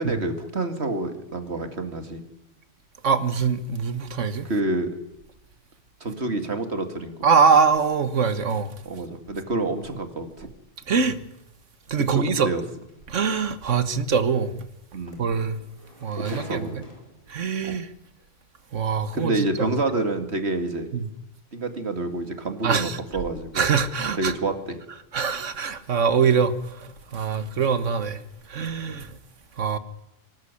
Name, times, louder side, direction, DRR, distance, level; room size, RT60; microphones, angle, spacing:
voice 1, 0.0-2.2 4.4-4.9 6.0-7.1 8.8-10.5 12.1-12.6 14.9-15.2 16.2-16.9 17.6-17.8 19.1-20.9 21.5-23.7 24.2-24.8, right 2 dB, 60° right, 2.6 m, -28 dB
voice 2, 3.0-4.5 7.2-8.7 10.9-11.2 11.9-12.5 13.1-14.6 15.2-15.6 16.0-16.8 17.3-17.9 18.7-19.7 20.9-21.1 22.6-23.0 23.5-24.3 25.1-28.2 28.5-29.2 29.6-29.8, right 6 dB, 75° right, 1.7 m, -23 dB
sound 1, 12.9-13.0 14.7-14.8 15.1-17.3 18.2-18.3, equal, 30° left, 4.4 m, -44 dB
24.0 x 13.0 x 9.8 m
omnidirectional pair, 1.3 m